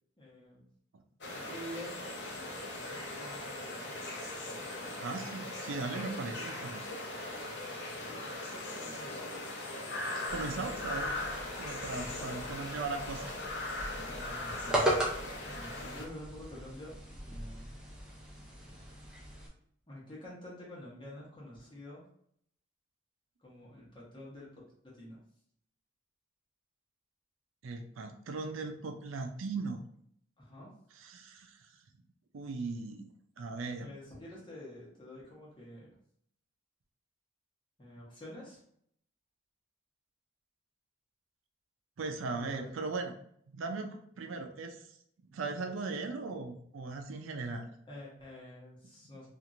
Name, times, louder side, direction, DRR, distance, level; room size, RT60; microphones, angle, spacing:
voice 1, 0.2-0.6 1.3-2.0 2.3-4.1 4.4-4.8 7.7-9.2 12.0-12.3 14.1-15.0 15.4-17.0 17.3-17.7 19.9-22.0 23.4-24.6 25.0-25.2 30.4-30.7 33.7-35.9 37.8-38.6 42.3-42.7 47.9-49.3, left 1 dB, 25° left, -6 dB, 1.0 m, -48 dB
sound 1, 1.2-16.1, left 2 dB, 60° left, 0.6 m, -40 dB
voice 2, 5.0-7.0 10.3-11.2 11.6-13.4 27.6-29.8 31.0-31.7 32.3-33.1 33.4-33.9 42.0-43.2 43.5-44.8 45.3-47.7, right 3 dB, 90° right, 4 dB, 0.4 m, -38 dB
sound 2, 10.3-19.5, right 1 dB, 5° right, 0.5 m, -38 dB
2.9 x 2.5 x 2.5 m, 0.67 s
head